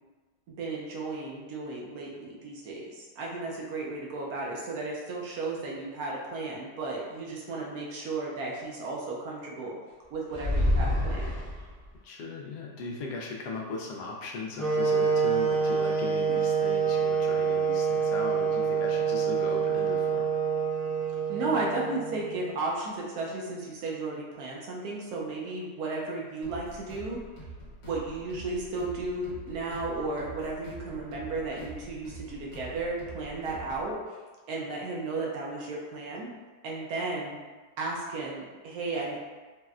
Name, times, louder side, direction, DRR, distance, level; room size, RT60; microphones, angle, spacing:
voice 1, 0.5-9.8 10.1-11.4 21.3-27.2 27.8-34.0 34.5-36.3 36.6-37.4 37.8-39.2, right 3 dB, 70° right, -3 dB, 1.0 m, -34 dB
sound 1, 10.3-12.0, left 1 dB, 45° right, 1.1 m, -27 dB
voice 2, 12.0-20.3, left 3 dB, 80° left, -1 dB, 1.2 m, -38 dB
sound 2, 14.6-22.6, right 6 dB, ahead, 0.8 m, -27 dB
sound 3, 26.4-33.9, right 2 dB, 60° left, 1.5 m, -45 dB
4.1 x 2.1 x 2.4 m, 1.3 s
omnidirectional pair, 1.8 m